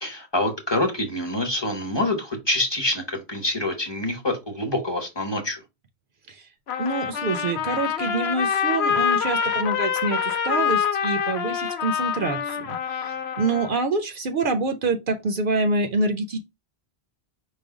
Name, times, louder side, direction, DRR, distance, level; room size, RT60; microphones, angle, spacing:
voice 1, 0.0-5.6, left 1 dB, 25° left, 0.9 m, -26 dB
Trumpet, 6.7-13.8, left 7 dB, 80° left, 0.9 m, -26 dB
voice 2, 6.8-16.4, right 3 dB, 60° right, 0.7 m, -26 dB
4.9 x 2.2 x 4.8 m
omnidirectional pair, 1.1 m